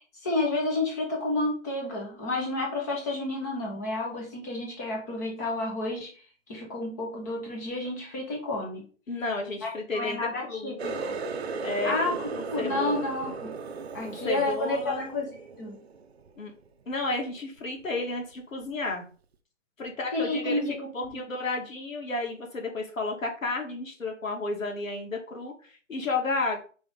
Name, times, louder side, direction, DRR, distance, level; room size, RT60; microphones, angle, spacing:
voice 1, 0.0-6.1 6.5-8.8 9.6-11.1 11.8-12.1 12.5-13.5 13.9-15.3 15.6-15.8 20.1-21.2, left 2 dB, 15° left, 0 dB, 1.1 m, -30 dB
voice 2, 9.1-10.9 11.6-13.0 14.0-15.1 16.4-16.5 16.9-19.0 19.8-26.6, left 3 dB, 80° left, 2 dB, 2.5 m, -32 dB
Water tap faucet, 10.8-16.3 16.7-17.1 17.6-17.9 18.6-18.7, right 4 dB, 55° right, 0.8 m, -36 dB
5.2 x 3.6 x 5.2 m, 0.40 s
hypercardioid pair, 170°, 39 cm